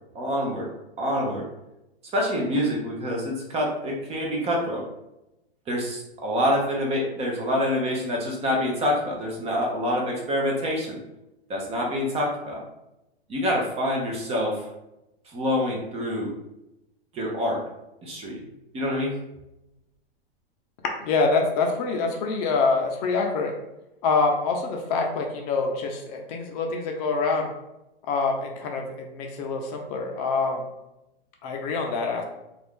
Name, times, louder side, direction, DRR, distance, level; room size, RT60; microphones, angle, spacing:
voice 1, 0.1-0.7 1.0-1.5 2.1-4.9 5.7-11.0 11.5-12.6 13.3-14.7 15.3-16.3 17.1-17.6 18.0-18.4 18.7-19.2, equal, 20° right, -1 dB, 0.6 m, -26 dB
voice 2, 21.0-23.5 24.0-27.5 28.1-30.7 31.4-32.2, left 4 dB, 40° left, 2 dB, 0.6 m, -25 dB
2.6 x 2.4 x 3.6 m, 0.92 s
hypercardioid pair, 125°, 31 cm